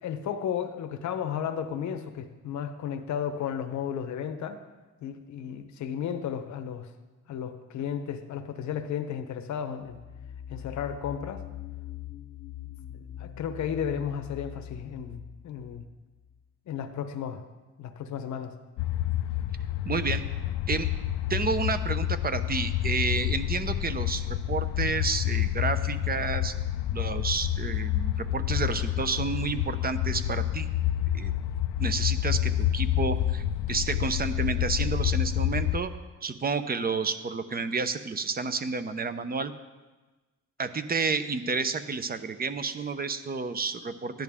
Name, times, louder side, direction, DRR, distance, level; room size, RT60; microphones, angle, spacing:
voice 1, 0.0-4.6 5.0-6.9 7.3-10.0 10.5-11.4 13.2-15.8 16.7-17.4 17.8-18.5, left 8 dB, 70° left, 8 dB, 0.9 m, -33 dB
sound 1, 9.8-16.4, left 10 dB, 40° left, 0.4 m, -43 dB
sound 2, 18.8-35.8, left 12 dB, 90° left, 0.5 m, -28 dB
voice 2, 19.9-20.2 20.7-20.9 21.3-26.5 26.9-30.7 31.1-31.3 31.8-35.9 36.2-39.5 40.6-44.2, right 4 dB, 30° right, 11 dB, 0.8 m, -30 dB
14.0 x 10.5 x 3.6 m, 1.2 s
cardioid pair, 90°, 30 cm